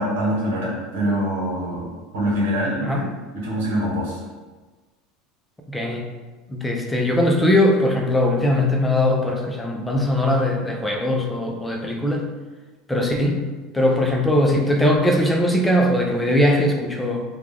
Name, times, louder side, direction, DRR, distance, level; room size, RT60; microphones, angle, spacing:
voice 1, 0.0-1.9 2.1-3.0 3.3-4.2 13.2-13.3, equal, 85° right, -5 dB, 1.1 m, -24 dB
voice 2, 5.7-6.0 6.5-12.3 12.9-13.5 13.7-17.2, left 1 dB, 10° left, 1 dB, 0.4 m, -20 dB
2.4 x 2.2 x 3.3 m, 1.3 s
supercardioid pair, 115°, 0 cm